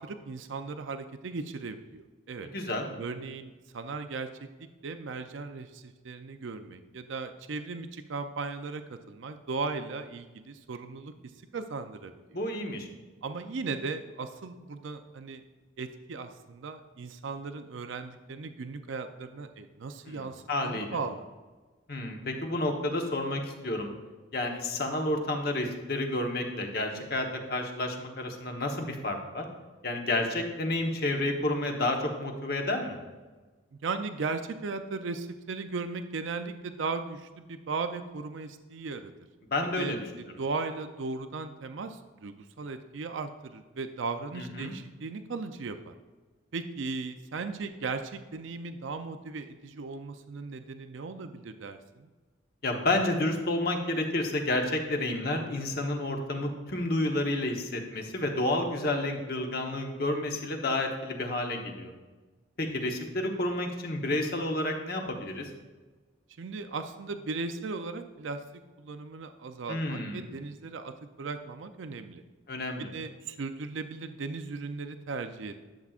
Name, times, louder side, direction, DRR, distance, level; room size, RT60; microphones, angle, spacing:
voice 1, 0.0-2.5 3.0-4.3 4.8-11.1 11.5-12.1 13.2-15.4 15.8-21.2 33.8-39.1 39.8-40.0 40.4-45.9 46.5-52.1 66.4-68.4 68.8-72.2 72.9-75.6, right 4 dB, 75° right, 8 dB, 0.5 m, -37 dB
voice 2, 2.4-2.8 12.3-12.9 20.0-21.0 21.9-23.9 24.3-29.4 29.8-33.0 39.5-40.1 44.3-44.7 52.6-61.9 62.6-65.5 69.7-70.3 72.5-72.9, left 1 dB, 50° left, 2 dB, 1.1 m, -30 dB
11.5 x 7.3 x 2.4 m, 1.3 s
head